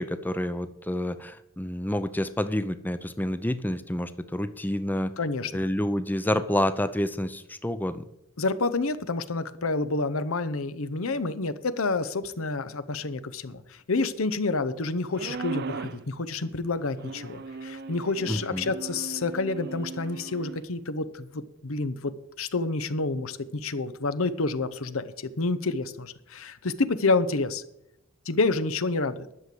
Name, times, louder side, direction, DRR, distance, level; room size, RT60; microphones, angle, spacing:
voice 1, 0.0-5.1 5.5-8.1 18.3-18.7, left 1 dB, 10° left, 12 dB, 0.6 m, -28 dB
voice 2, 5.2-5.5 8.4-27.6 28.3-29.3, left 3 dB, 75° left, 13 dB, 0.9 m, -29 dB
sound 1, 15.1-16.1 17.0-20.6, right 4 dB, 50° right, 0.5 m, -38 dB
11.5 x 6.8 x 7.7 m, 0.82 s
head